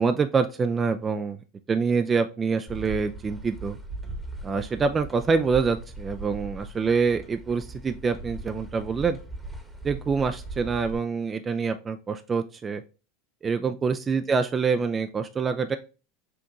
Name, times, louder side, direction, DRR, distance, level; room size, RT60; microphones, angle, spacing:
voice 1, 0.0-1.4 1.7-3.8 4.4-9.2 9.8-12.8 13.4-15.8, right 5 dB, 25° right, 7 dB, 0.4 m, -26 dB
sound 1, 2.7-11.0, right 2 dB, 5° right, 1.1 m, -39 dB
6.0 x 2.5 x 2.9 m, 0.32 s
hypercardioid pair, 90°, 0 cm